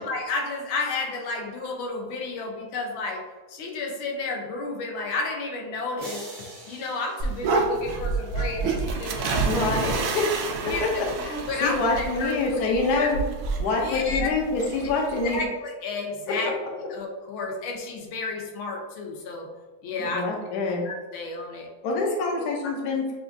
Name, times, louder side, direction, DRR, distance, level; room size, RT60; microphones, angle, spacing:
voice 1, 0.0-6.3 6.7-9.7 10.7-12.6 12.9-13.1 13.8-14.3 14.8-16.5 16.9-19.5 19.8-20.2 20.8-21.7 22.4-22.5, left 3 dB, 85° left, 1 dB, 1.5 m, -32 dB
sound 1, 6.0-8.3, right 2 dB, 45° right, 0.6 m, -44 dB
sound 2, 7.2-15.5, right 4 dB, 75° right, 1.3 m, -29 dB
voice 2, 9.4-10.3 11.0-13.2 13.6-15.4 20.0-20.9 21.8-23.1, left 3 dB, 65° left, -1 dB, 1.2 m, -26 dB
6.9 x 2.4 x 2.6 m, 1.4 s
omnidirectional pair, 2.2 m